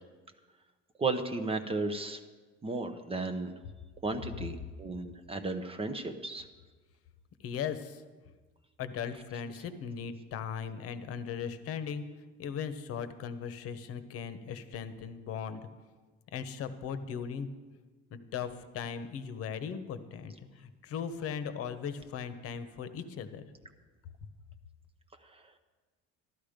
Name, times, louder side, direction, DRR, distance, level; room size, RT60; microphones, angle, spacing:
voice 1, 1.0-2.2 2.6-3.5 4.0-6.5 25.3-25.4, right 3 dB, 20° right, 8 dB, 0.7 m, -34 dB
voice 2, 7.4-8.0 8.8-12.0 12.4-15.7 16.3-17.5 18.1-23.5, left 7 dB, 50° left, 11 dB, 1.0 m, -38 dB
13.0 x 12.5 x 5.1 m, 1.3 s
cardioid pair, 150°, 29 cm